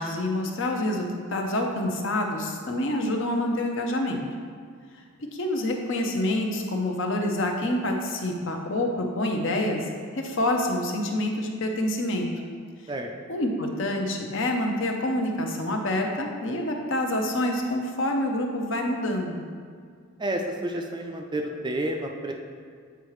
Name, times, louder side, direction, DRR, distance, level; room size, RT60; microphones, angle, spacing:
voice 1, 0.0-4.2 5.3-12.3 13.3-19.4, left 1 dB, 55° left, 2 dB, 0.7 m, -27 dB
voice 2, 20.2-22.3, right 1 dB, 20° right, 2 dB, 0.3 m, -30 dB
8.0 x 4.7 x 3.1 m, 2.1 s
head